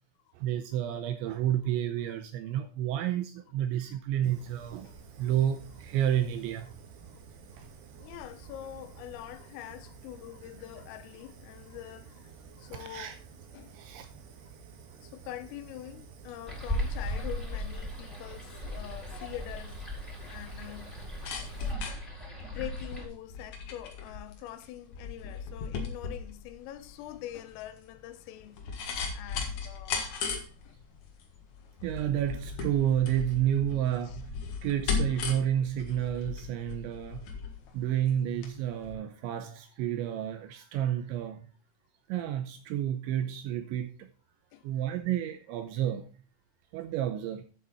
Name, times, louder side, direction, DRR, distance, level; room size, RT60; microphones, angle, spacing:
voice 1, 0.3-6.7 12.7-13.2 13.7-14.1 30.3-30.4 31.8-37.3 37.7-41.5 42.1-44.1 44.6-46.1 46.7-47.5, right 11 dB, 80° right, 2.8 m, -30 dB
Fire, 4.2-21.7, right 5 dB, 65° right, 3.2 m, -51 dB
voice 2, 4.9-5.3 8.0-13.2 13.5-13.8 15.0-19.8 20.3-21.0 22.4-28.6 29.1-30.1 30.6-30.8 34.0-34.2 44.5-44.7, left 13 dB, 85° left, 3.6 m, -44 dB
sound 1, 16.5-23.0, left 1 dB, ahead, 3.1 m, -37 dB
sound 2, 20.9-38.5 38.8-38.9, left 5 dB, 70° left, 1.8 m, -37 dB
9.6 x 8.0 x 4.2 m
omnidirectional pair, 5.8 m